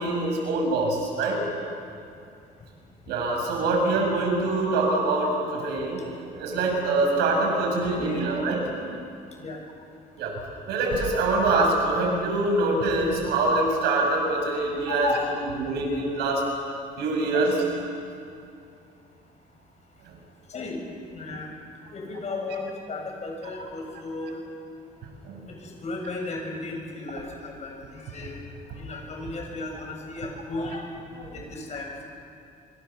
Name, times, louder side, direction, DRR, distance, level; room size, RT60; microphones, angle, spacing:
voice 1, 0.0-1.4 3.1-8.9 10.2-10.3 10.7-16.4 17.0-17.6 25.2-25.4, right 2 dB, 85° right, 1 dB, 6.9 m, -24 dB
voice 2, 7.9-8.3 9.4-9.6 14.9-15.3 20.5-20.8 21.1-21.5 21.9-24.4 25.5-28.4 28.7-32.0, left 3 dB, 40° left, 1 dB, 7.4 m, -34 dB
26.0 x 25.0 x 7.3 m, 2.5 s
cardioid pair, 110°, 17 cm